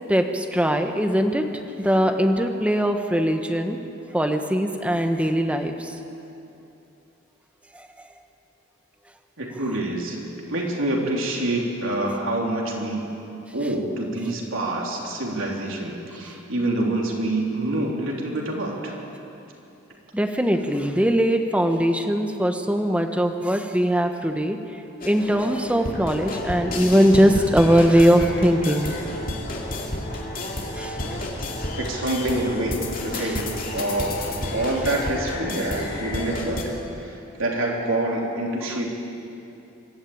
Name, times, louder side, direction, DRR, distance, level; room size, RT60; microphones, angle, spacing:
voice 1, 0.1-1.5 1.8-3.8 4.1-5.9 7.7-7.8 20.1-24.6 25.0-28.9 30.7-31.0 33.2-33.3 38.7-38.8, equal, 5° right, 5 dB, 1.1 m, -21 dB
voice 2, 9.4-10.2 10.5-13.0 13.5-19.0 31.8-36.6 37.0-38.9, right 1 dB, 75° right, -1 dB, 3.4 m, -26 dB
sound 1, 25.0-36.6, left 1 dB, 45° left, 2.6 m, -31 dB
23.5 x 13.0 x 8.8 m, 2.9 s
head